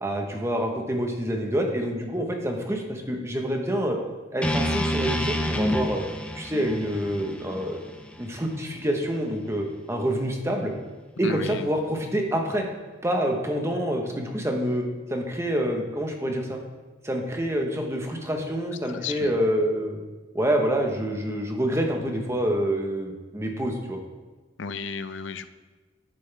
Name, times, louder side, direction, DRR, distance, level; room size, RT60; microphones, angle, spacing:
voice 1, 0.0-4.0 4.3-6.0 6.3-7.8 8.2-10.7 11.2-12.7 13.0-14.8 15.1-16.6 17.0-20.0 20.3-24.0, equal, 15° right, 2 dB, 1.1 m, -27 dB
sound 1, 4.4-8.6, left 1 dB, 5° left, 0.6 m, -28 dB
voice 2, 11.2-11.6 18.9-19.4 24.6-25.5, left 5 dB, 75° left, 11 dB, 0.5 m, -33 dB
9.7 x 9.3 x 3.4 m, 1.3 s
head